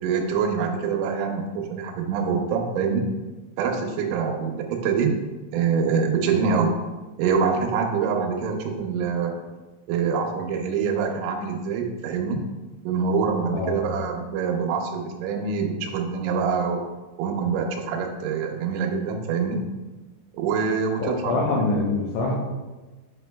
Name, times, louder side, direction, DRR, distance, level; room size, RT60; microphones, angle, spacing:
voice 1, 0.0-3.1 3.6-5.2 5.5-6.7 7.2-9.3 9.9-12.4 12.9-16.8 17.2-19.6 20.4-21.7, right 5 dB, 80° right, 3 dB, 2.9 m, -25 dB
voice 2, 13.5-13.8 21.0-22.3, left 2 dB, 80° left, -4 dB, 2.5 m, -24 dB
8.2 x 5.2 x 2.2 m, 1.2 s
omnidirectional pair, 5.8 m